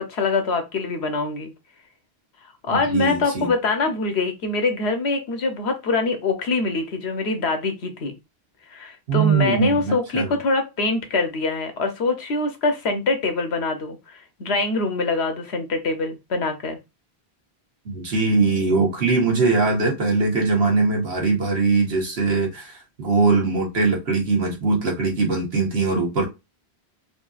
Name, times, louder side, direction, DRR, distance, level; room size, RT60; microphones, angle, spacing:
voice 1, 0.0-1.5 2.6-8.1 8.7-16.8, left 3 dB, 90° left, 1.1 m, -24 dB
voice 2, 2.7-3.5 9.1-10.4 17.9-26.2, right 4 dB, 75° right, 1.7 m, -21 dB
4.2 x 2.7 x 2.4 m
omnidirectional pair, 1.1 m